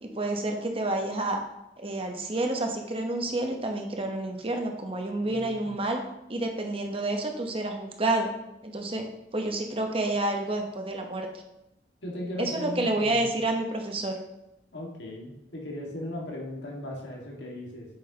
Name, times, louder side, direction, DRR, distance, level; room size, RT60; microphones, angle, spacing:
voice 1, 0.0-1.4 1.8-6.0 6.3-8.3 8.6-9.1 9.3-11.3 12.4-14.1, right 2 dB, 30° right, 3 dB, 1.0 m, -29 dB
voice 2, 5.2-5.7 12.0-13.4 14.7-17.9, left 1 dB, 75° left, -2 dB, 1.9 m, -37 dB
8.6 x 6.3 x 2.9 m, 0.88 s
head